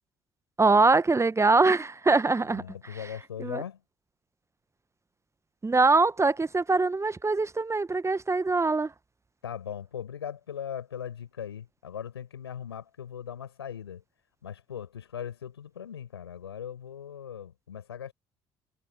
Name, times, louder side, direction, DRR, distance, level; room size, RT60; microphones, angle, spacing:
voice 1, 0.6-2.6 3.4-3.6 5.6-8.9, right 3 dB, 20° right, 1.2 m, -23 dB
voice 2, 2.4-3.8 9.4-14.0 14.4-18.1, left 8 dB, 85° left, 5.5 m, -39 dB
figure-of-eight pair, 50°, 13 cm